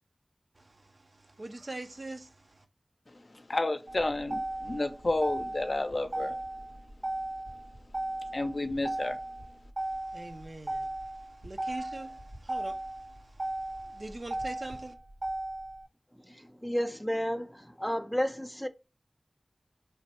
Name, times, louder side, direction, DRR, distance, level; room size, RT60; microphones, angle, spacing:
voice 1, 0.6-2.6 9.8-15.0, right 2 dB, 60° right, 0.5 m, -44 dB
voice 2, 3.5-6.4 8.3-9.2, left 2 dB, 65° left, 0.5 m, -31 dB
Motor vehicle (road), 3.9-15.9, right 1 dB, 75° right, 1.9 m, -36 dB
voice 3, 16.6-18.7, equal, ahead, 0.5 m, -31 dB
3.2 x 2.1 x 4.2 m
wide cardioid pair, 45°, 0 cm